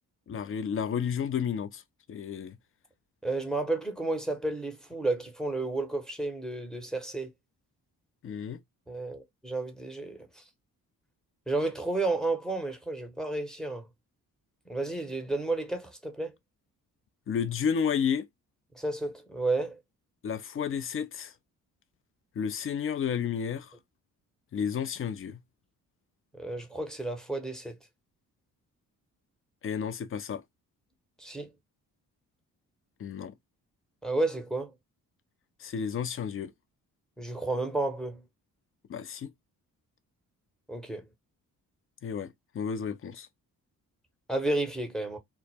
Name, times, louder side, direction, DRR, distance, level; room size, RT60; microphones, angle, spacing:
voice 1, 0.3-1.8 2.1-2.6 8.2-8.6 17.3-18.3 20.2-21.3 22.4-23.7 24.5-25.4 29.6-30.4 33.0-33.3 35.6-36.5 38.9-39.3 42.0-43.3, left 7 dB, 30° left, 0.4 m, -31 dB
voice 2, 3.2-7.3 8.9-10.4 11.5-13.9 14.7-16.3 18.7-19.8 26.3-27.8 31.2-31.5 34.0-34.7 37.2-38.2 40.7-41.1 44.3-45.2, right 2 dB, ahead, 0.9 m, -31 dB
2.0 x 2.0 x 3.3 m
hypercardioid pair, 40°, 44 cm